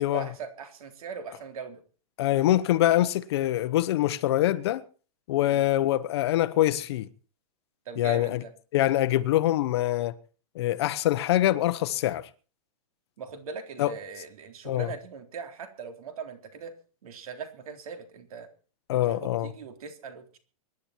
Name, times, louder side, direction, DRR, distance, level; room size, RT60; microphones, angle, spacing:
voice 1, 0.0-1.8 5.4-5.6 7.9-8.5 13.2-16.7 17.0-18.5 18.9-20.4, right 5 dB, 70° right, 3.7 m, -40 dB
voice 2, 2.2-4.8 5.3-7.1 8.0-8.4 8.7-10.1 10.5-12.3 13.8-13.9 14.7-14.9 18.9-19.5, left 14 dB, 45° left, 0.9 m, -24 dB
25.0 x 11.0 x 4.4 m
supercardioid pair, 170°, 19 cm